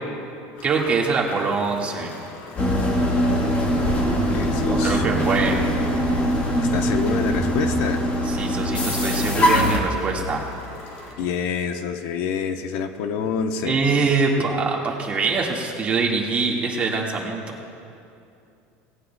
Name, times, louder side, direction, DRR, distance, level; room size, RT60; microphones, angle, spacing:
sound 1, 0.6-11.1, left 2 dB, 90° left, 3.3 m, -42 dB
voice 1, 0.6-2.1 4.7-5.6 8.3-10.4 13.7-17.4, right 4 dB, 25° right, -1 dB, 1.7 m, -23 dB
sound 2, 2.5-9.8, equal, 25° left, 1.6 m, -22 dB
voice 2, 4.3-5.1 6.7-8.0 11.2-13.8, left 6 dB, 70° left, 7 dB, 0.8 m, -27 dB
17.5 x 17.5 x 2.3 m, 2.5 s
cardioid pair, 155°, 5 cm